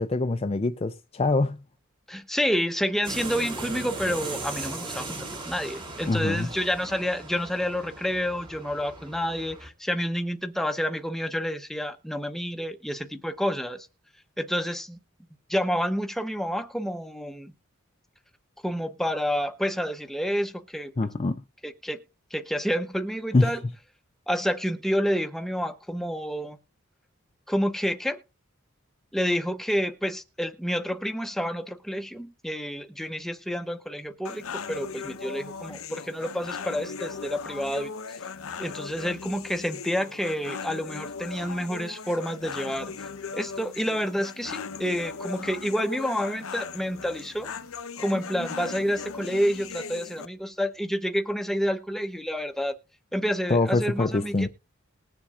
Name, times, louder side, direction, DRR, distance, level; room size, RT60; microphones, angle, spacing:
voice 1, 0.0-1.6 6.1-6.5 21.0-21.4 23.3-23.5 53.5-54.5, left 3 dB, 30° left, 0.4 m, -24 dB
voice 2, 2.1-5.2 5.4-13.9 14.4-15.0 15.5-17.5 18.6-20.9 21.6-22.0 22.3-23.6 24.3-26.6 27.5-28.2 29.1-37.9 38.6-42.9 43.3-47.5 48.0-52.8 53.1-54.5, equal, ahead, 0.7 m, -29 dB
sound 1, 3.0-9.7, right 2 dB, 25° right, 2.0 m, -38 dB
sound 2, 34.3-50.3, left 5 dB, 85° left, 0.8 m, -38 dB
20.5 x 7.0 x 2.4 m
head